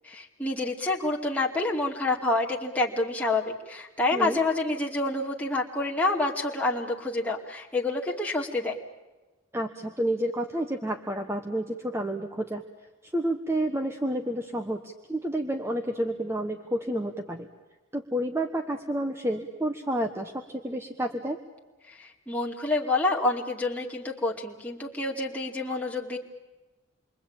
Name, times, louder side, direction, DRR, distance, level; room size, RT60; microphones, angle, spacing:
voice 1, 0.0-8.8 22.0-26.2, left 2 dB, 5° left, -2 dB, 2.4 m, -28 dB
voice 2, 4.1-4.4 9.5-12.6 13.0-17.5 17.9-21.4, right 1 dB, 15° right, 5 dB, 1.2 m, -30 dB
28.5 x 23.0 x 8.9 m, 1.2 s
head